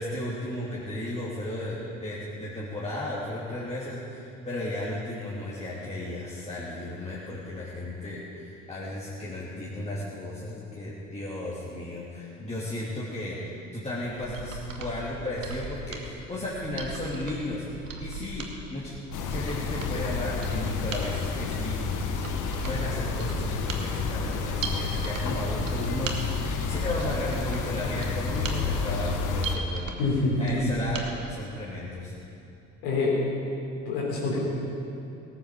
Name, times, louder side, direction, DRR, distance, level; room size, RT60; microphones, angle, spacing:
voice 1, 0.0-18.9 19.3-21.8 22.7-29.9 30.4-31.0 31.3-32.1, left 1 dB, 15° left, -8 dB, 2.9 m, -34 dB
Mechanisms, 14.2-31.1 31.4-31.5, right 3 dB, 85° right, 1.2 m, -38 dB
sound 1, 19.1-29.6, left 5 dB, 55° left, 1.3 m, -30 dB
voice 2, 30.0-30.6 32.8-33.2 33.9-34.4, left 3 dB, 70° left, -5 dB, 4.2 m, -26 dB
17.5 x 8.1 x 6.7 m, 2.7 s
figure-of-eight pair, 55°, 37 cm